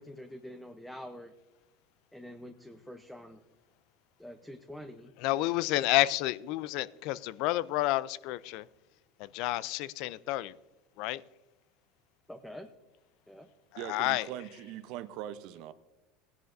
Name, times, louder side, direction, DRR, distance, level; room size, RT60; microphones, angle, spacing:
voice 1, 0.0-1.3 2.1-3.4 4.2-5.1 12.3-12.7 13.3-13.5, left 1 dB, 5° left, 0.7 m, -46 dB
voice 2, 5.2-8.7 9.2-10.6 11.0-11.2 13.7-14.3, left 17 dB, 65° left, 0.4 m, -30 dB
voice 3, 13.8-15.7, right 12 dB, 65° right, 0.6 m, -41 dB
17.0 x 10.5 x 2.6 m
supercardioid pair, 115°, 0 cm